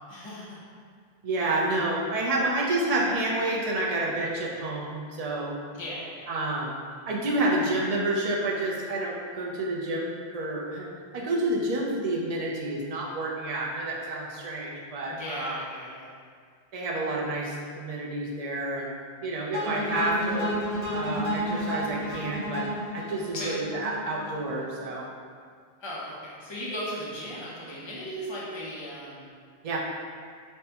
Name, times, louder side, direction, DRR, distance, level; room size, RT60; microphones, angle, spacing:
voice 1, 0.1-0.6 5.7-6.4 15.1-16.1 23.3-23.7 25.8-29.3, equal, 30° left, -6 dB, 0.7 m, -37 dB
voice 2, 1.2-5.6 6.3-6.8 7.1-15.6 16.7-19.0 19.2-20.5 20.9-22.7 22.9-25.1 29.6-29.8, right 2 dB, 45° right, -3 dB, 0.5 m, -29 dB
sound 1, 19.5-24.6, equal, 65° left, 1.3 m, -31 dB
5.3 x 2.2 x 2.9 m, 2.1 s
omnidirectional pair, 1.1 m